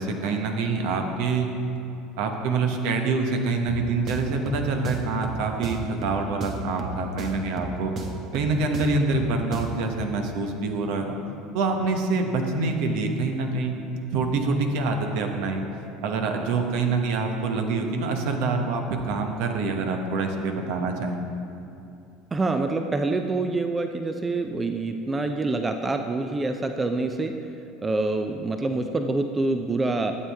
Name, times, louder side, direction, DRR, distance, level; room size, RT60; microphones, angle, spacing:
voice 1, 0.0-1.5 2.2-7.9 8.3-11.2 11.5-13.7 14.1-15.6 16.0-21.2, right 3 dB, 70° right, 4 dB, 1.0 m, -26 dB
sound 1, 3.7-9.9, right 4 dB, 45° right, 1.0 m, -35 dB
voice 2, 22.3-27.4 27.8-30.1, right 3 dB, 20° right, 6 dB, 0.5 m, -26 dB
12.5 x 7.5 x 3.5 m, 2.7 s
hypercardioid pair, 75°, 0 cm